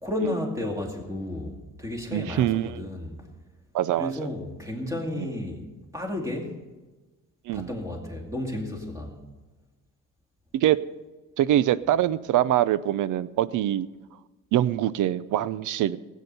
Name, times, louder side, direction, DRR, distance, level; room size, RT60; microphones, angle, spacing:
voice 1, 0.0-3.3 4.0-5.6 5.9-6.6 7.5-9.2, left 1 dB, 10° right, 1 dB, 2.4 m, -32 dB
voice 2, 2.1-2.9 3.7-4.1 5.2-5.3 7.5-7.7 10.5-10.8 11.4-13.9 14.5-16.0, right 12 dB, 70° right, 17 dB, 0.6 m, -24 dB
18.5 x 8.4 x 5.4 m, 1.2 s
cardioid pair, 130°, 32 cm